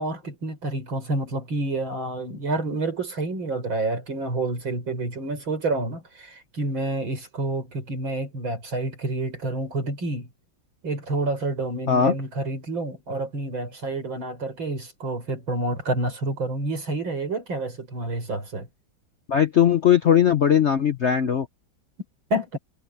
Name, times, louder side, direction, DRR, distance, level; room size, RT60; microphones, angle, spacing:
voice 1, 0.0-10.3 10.8-18.7 22.3-22.6, right 2 dB, 80° right, 6.5 m, -28 dB
voice 2, 19.3-21.5, left 9 dB, 60° left, 0.7 m, -19 dB
omnidirectional pair, 2.1 m